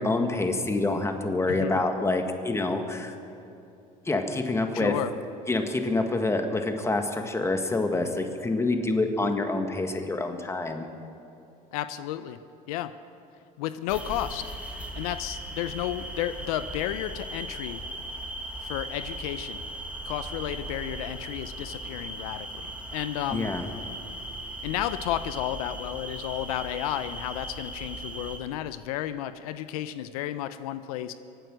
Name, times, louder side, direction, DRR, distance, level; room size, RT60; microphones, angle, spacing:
voice 1, 0.0-3.1 4.0-4.9 5.5-10.9 23.3-23.6, left 2 dB, 15° left, 5 dB, 1.7 m, -27 dB
voice 2, 1.5-1.8 4.7-5.1 11.7-12.4 12.7-12.9 13.6-14.5 14.9-17.8 18.6-19.6 20.1-23.5 24.6-31.1, left 12 dB, 85° left, 12 dB, 0.6 m, -32 dB
sound 1, 13.9-28.4, right 1 dB, 5° right, 2.0 m, -38 dB
24.0 x 9.3 x 6.3 m, 2.6 s
supercardioid pair, 95°, 18 cm